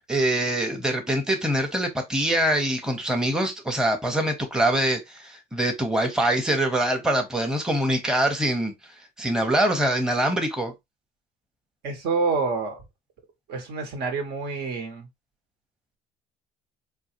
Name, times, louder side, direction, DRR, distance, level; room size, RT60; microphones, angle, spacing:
voice 1, 0.1-8.7 9.2-10.7, right 1 dB, 5° right, 0.7 m, -24 dB
voice 2, 11.8-12.8 13.5-15.1, right 4 dB, 75° right, 1.1 m, -27 dB
3.7 x 2.3 x 2.8 m
cardioid pair, 110°, 17 cm